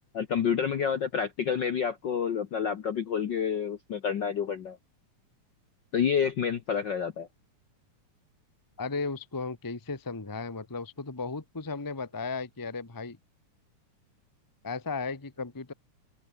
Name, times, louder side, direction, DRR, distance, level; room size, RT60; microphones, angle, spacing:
voice 1, 0.1-4.8 5.9-7.3, left 7 dB, 70° left, 1.0 m, -29 dB
voice 2, 8.8-13.2 14.6-15.7, left 4 dB, 30° left, 0.3 m, -35 dB
omnidirectional pair, 3.6 m